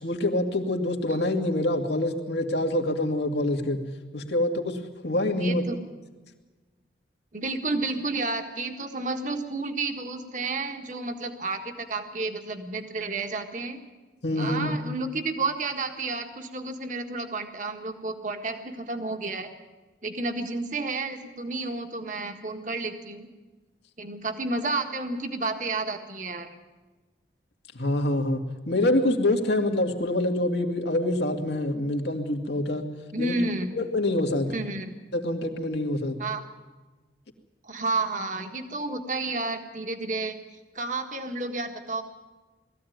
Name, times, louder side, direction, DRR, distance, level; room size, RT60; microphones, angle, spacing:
voice 1, 0.0-3.8 4.1-5.6 14.2-14.8 27.7-28.4 28.7-32.9 33.2-33.4 33.7-34.5 35.1-36.2, left 1 dB, 70° left, 4 dB, 2.2 m, -26 dB
voice 2, 5.4-5.8 7.3-13.8 14.4-19.5 20.0-23.3 24.0-26.5 33.1-33.7 34.5-34.9 36.2-36.4 37.6-40.3 40.7-42.0, right 3 dB, 45° right, 5 dB, 1.7 m, -31 dB
20.0 x 15.0 x 9.3 m, 1.3 s
head